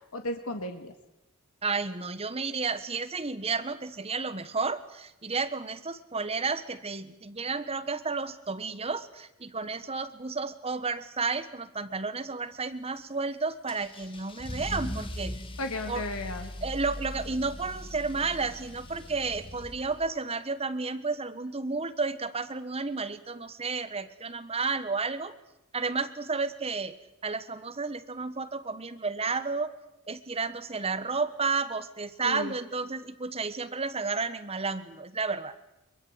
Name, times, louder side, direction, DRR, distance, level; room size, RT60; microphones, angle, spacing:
voice 1, 0.1-0.9 15.6-16.5 32.2-32.6, left 2 dB, 75° left, 6 dB, 1.9 m, -34 dB
voice 2, 1.6-15.4 15.9-16.0 16.6-25.3 25.7-27.0 27.2-29.7 30.1-35.5, right 4 dB, 25° right, 11 dB, 1.2 m, -32 dB
Car / Engine starting / Accelerating revving vroom, 13.7-20.2, left 1 dB, 25° left, 2.1 m, -40 dB
23.0 x 21.5 x 8.1 m, 0.89 s
head